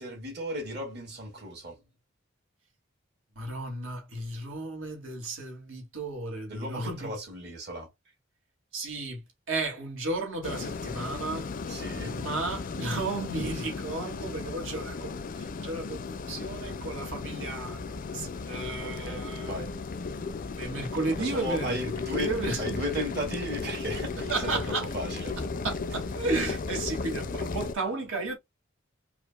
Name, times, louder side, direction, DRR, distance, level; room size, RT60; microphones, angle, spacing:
voice 1, 0.0-1.8 6.5-7.9 11.7-12.2 18.8-19.7 21.1-22.3 22.6-25.4, equal, 55° right, 2.4 m, -35 dB
voice 2, 3.4-7.1 8.7-11.5 12.0-19.6 20.6-22.6 24.2-24.9 25.4-28.4, right 2 dB, 75° right, 2.0 m, -34 dB
sound 1, 10.4-27.7, left 4 dB, 45° left, 0.4 m, -35 dB
4.9 x 2.5 x 2.2 m
head